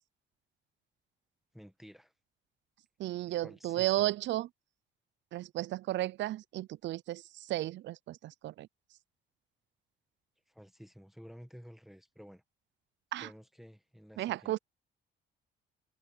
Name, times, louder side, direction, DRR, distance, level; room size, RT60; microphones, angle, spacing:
voice 1, 1.5-2.1 3.3-4.1 10.5-12.4 13.2-14.6, equal, ahead, 1.7 m, -53 dB
voice 2, 3.0-4.5 5.3-7.2 7.5-8.7 13.1-13.3 14.2-14.6, right 15 dB, 65° right, 0.4 m, -33 dB
cardioid pair, 90°, 20 cm